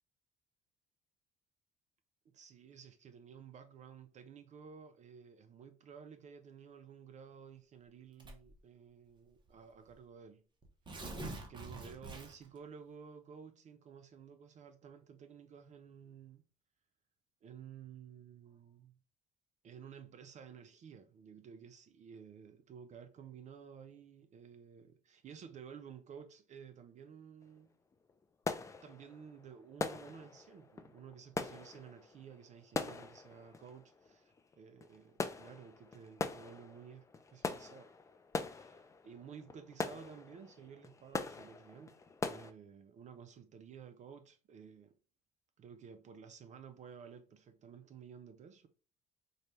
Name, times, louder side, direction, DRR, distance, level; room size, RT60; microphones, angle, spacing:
voice 1, 2.3-10.4 11.3-16.4 17.4-19.0 19.6-27.7 28.8-37.9 38.4-45.0 45.6-48.7, right 7 dB, 45° right, 0.4 m, -53 dB
Tearing, 8.2-8.6 9.5-9.6 9.9-10.0 10.6-12.6, right 2 dB, 25° right, 0.8 m, -45 dB
sound 1, 27.4-27.6 27.9-42.5, left 4 dB, 20° left, 0.3 m, -43 dB
4.0 x 2.2 x 3.1 m
cardioid pair, 110°, 17 cm